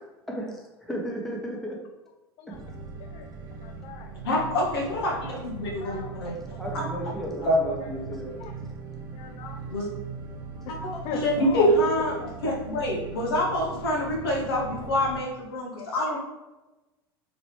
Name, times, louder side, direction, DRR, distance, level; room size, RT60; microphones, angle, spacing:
voice 1, 0.9-1.8 2.5-2.6 6.6-8.4, equal, 5° left, -2 dB, 0.8 m, -34 dB
sound 1, 2.5-15.2, right 5 dB, 35° right, 0.7 m, -40 dB
voice 2, 3.6-4.4 5.2-5.3 5.7-6.4 6.7-6.9 8.3-8.5 9.1-9.6 11.0-11.7 12.2-12.6 15.8-16.2, left 7 dB, 45° left, 3 dB, 0.4 m, -39 dB
voice 3, 4.2-6.3 6.7-6.8 7.4-7.7 9.7-9.9 10.7-16.2, left 1 dB, 70° left, -2 dB, 0.9 m, -26 dB
3.0 x 2.8 x 3.1 m, 1.1 s
figure-of-eight pair, 80°, 13 cm